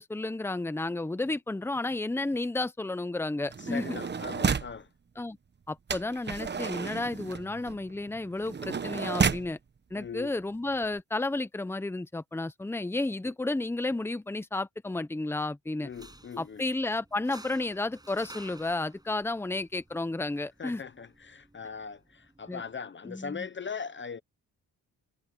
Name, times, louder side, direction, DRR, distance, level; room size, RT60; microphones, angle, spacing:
voice 1, 0.0-3.8 5.2-5.4 5.7-9.6 9.9-15.9 16.4-20.8 22.5-22.6 23.0-23.5, left 2 dB, 5° left, 0.9 m, -32 dB
sound 1, 3.5-4.8 5.9-9.5 10.4-10.5 10.7-11.0, right 5 dB, 30° right, 1.1 m, -32 dB
voice 2, 3.6-4.9 9.9-10.3 15.8-16.6 20.6-24.2, left 6 dB, 30° left, 0.8 m, -40 dB
sound 2, 15.8-22.8, right 1 dB, 10° right, 7.7 m, -53 dB
cardioid pair, 105°, 35 cm